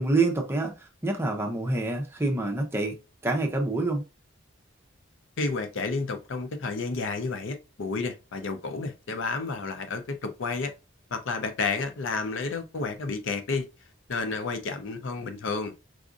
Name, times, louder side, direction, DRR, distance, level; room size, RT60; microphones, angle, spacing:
voice 1, 0.0-2.9 3.2-4.0, right 2 dB, 15° right, 0.6 m, -27 dB
voice 2, 5.4-10.7 11.1-13.7 14.1-15.7, left 4 dB, 70° left, 0.5 m, -31 dB
4.7 x 2.5 x 2.4 m
head